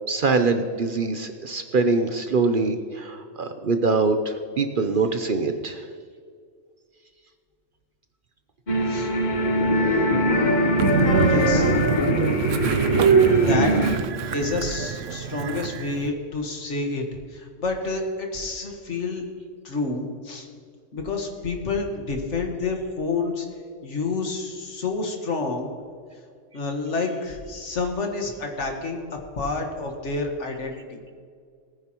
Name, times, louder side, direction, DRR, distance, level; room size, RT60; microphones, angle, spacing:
voice 1, 0.1-5.8, right 3 dB, 50° right, 7 dB, 0.8 m, -23 dB
sound 1, 8.7-14.0, left 1 dB, 40° left, 1.1 m, -22 dB
Train, 10.8-16.1, right 6 dB, 75° right, 1.0 m, -23 dB
voice 2, 11.2-11.8 13.5-13.7 14.3-19.2 19.6-20.5 20.9-23.5 23.8-25.7 26.5-31.0, left 3 dB, 70° left, 2 dB, 1.8 m, -29 dB
19.0 x 9.5 x 3.0 m, 2.1 s
omnidirectional pair, 1.3 m